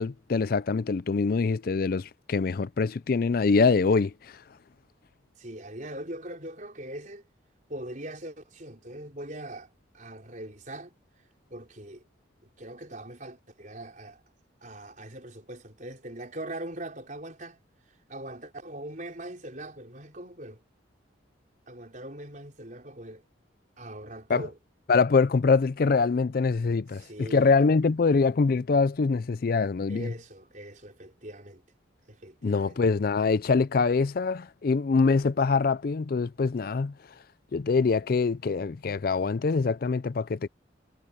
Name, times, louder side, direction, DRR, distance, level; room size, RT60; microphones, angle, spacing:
voice 1, 0.0-4.4 24.3-24.4 24.9-30.1 32.4-36.9 37.5-40.5, left 4 dB, 50° left, 0.4 m, -24 dB
voice 2, 5.4-7.2 7.7-9.7 9.9-11.0 11.5-12.0 12.4-14.2 14.6-17.6 18.1-20.6 21.7-23.2 23.8-24.6 26.9-27.5 29.9-31.6 32.1-32.8, right 1 dB, 40° right, 4.8 m, -41 dB
head